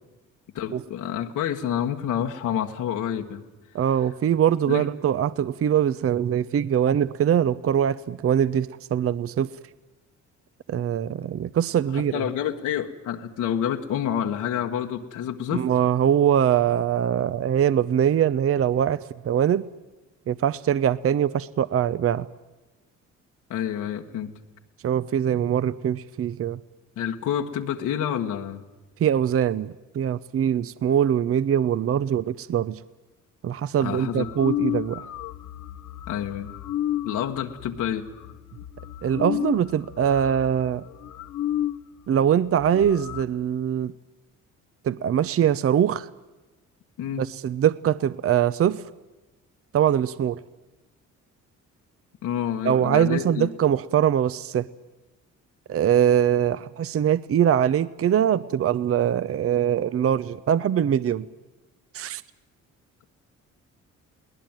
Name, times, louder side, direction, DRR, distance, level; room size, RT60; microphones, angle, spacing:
voice 1, 0.5-3.4 4.7-4.8 11.9-15.7 23.5-24.3 27.0-28.6 33.8-34.3 36.1-36.5 37.0-38.1 47.0-47.2 52.2-53.5, left 9 dB, 85° left, 3 dB, 1.6 m, -28 dB
voice 2, 3.7-9.5 10.7-12.2 15.5-19.7 20.3-22.3 24.8-26.6 29.0-32.8 33.4-35.1 39.0-40.8 42.1-43.9 44.8-46.1 47.2-48.8 49.7-50.4 52.6-54.7 55.7-61.3 61.9-62.2, right 9 dB, 50° right, 17 dB, 0.7 m, -22 dB
sound 1, 33.9-41.8 42.2-42.3 42.5-43.2, left 12 dB, 70° left, 0.9 m, -32 dB
22.0 x 18.5 x 9.0 m, 1.1 s
cardioid pair, 90°, 30 cm